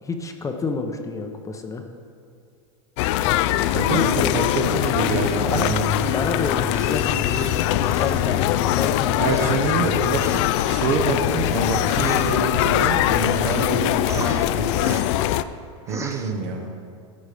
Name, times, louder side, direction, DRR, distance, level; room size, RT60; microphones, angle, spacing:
voice 1, 0.0-1.8 3.6-4.4 5.4-5.8 6.1-9.3, left 4 dB, 20° left, 4 dB, 0.8 m, -29 dB
sound 1, 3.0-15.4, left 13 dB, 60° left, 0.4 m, -22 dB
voice 2, 3.7-4.1 4.3-5.8 9.2-15.0 15.9-16.7, right 4 dB, 55° right, 2 dB, 1.3 m, -26 dB
sound 2, 5.3-6.0 6.7-8.6 9.2-12.7 13.1-13.7 14.1-15.3 15.9-16.3, right 4 dB, 15° right, 0.7 m, -39 dB
Tools, 5.6-12.9, left 2 dB, 35° left, 1.2 m, -37 dB
14.0 x 5.4 x 5.1 m, 2.4 s
hypercardioid pair, 110°, 17 cm